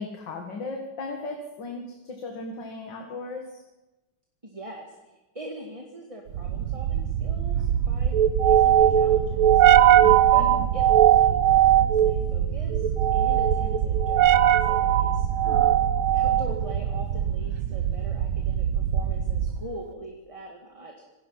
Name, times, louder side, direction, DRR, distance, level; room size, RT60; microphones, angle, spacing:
voice 1, 0.0-3.4 9.9-10.7 15.4-15.7, left 3 dB, 55° left, 2 dB, 2.5 m, -36 dB
voice 2, 4.4-9.7 10.3-10.4 10.7-15.3 16.1-20.9, right 2 dB, 15° right, 1 dB, 1.9 m, -42 dB
sound 1, 6.3-19.7, right 10 dB, 70° right, 1.7 m, -21 dB
26.0 x 17.5 x 5.7 m, 1.1 s
omnidirectional pair, 2.4 m